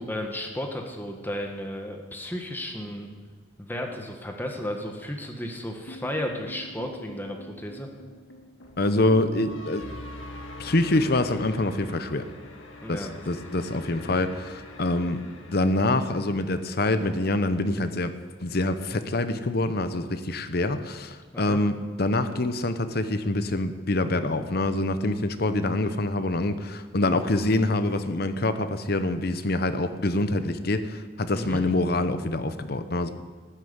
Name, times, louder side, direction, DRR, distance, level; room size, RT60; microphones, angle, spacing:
voice 1, 0.0-3.1 3.6-7.9 12.8-13.1 21.3-21.6 31.3-31.6, left 1 dB, 10° left, 2 dB, 1.6 m, -33 dB
sound 1, 5.9-18.1, left 1 dB, 80° left, 1.9 m, -44 dB
voice 2, 8.8-9.9 10.6-12.3 12.9-15.2 15.5-18.2 18.4-33.1, left 2 dB, 50° left, 10 dB, 0.9 m, -25 dB
13.5 x 9.4 x 8.2 m, 1.5 s
head